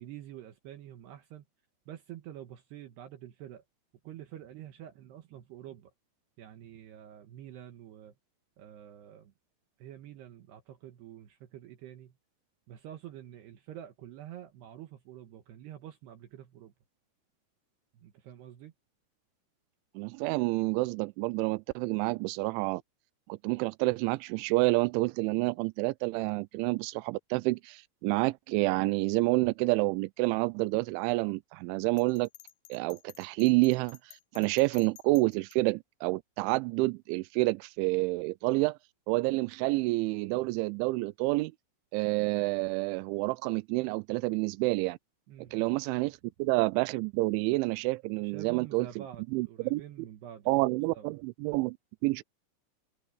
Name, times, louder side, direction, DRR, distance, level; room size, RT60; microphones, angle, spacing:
voice 1, 0.0-1.4 1.9-3.6 4.0-5.9 6.4-8.1 8.6-9.3 9.8-12.1 12.7-16.7 17.9-18.7 45.3-45.6 48.1-51.1, right 11 dB, 70° right, 3.2 m, -47 dB
voice 2, 20.0-22.8 23.3-32.3 32.7-38.8 39.1-41.5 41.9-45.0 45.5-48.9 49.3-49.8 50.5-51.8 52.0-52.2, right 23 dB, 90° right, 3.0 m, -28 dB
Bell, 32.0-35.6, left 15 dB, 80° left, 3.3 m, -54 dB
omnidirectional pair, 5.3 m